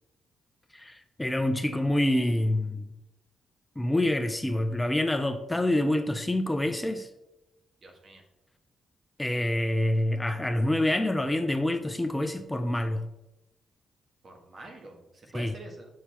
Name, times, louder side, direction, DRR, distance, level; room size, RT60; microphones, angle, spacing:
voice 1, 0.7-2.9 3.8-7.1 9.2-13.1 15.3-15.5, left 1 dB, 15° left, 8 dB, 0.5 m, -27 dB
voice 2, 7.8-8.2 14.2-15.9, right 2 dB, 50° right, 2 dB, 1.5 m, -46 dB
6.7 x 6.4 x 2.9 m, 0.94 s
cardioid pair, 70°, 0 cm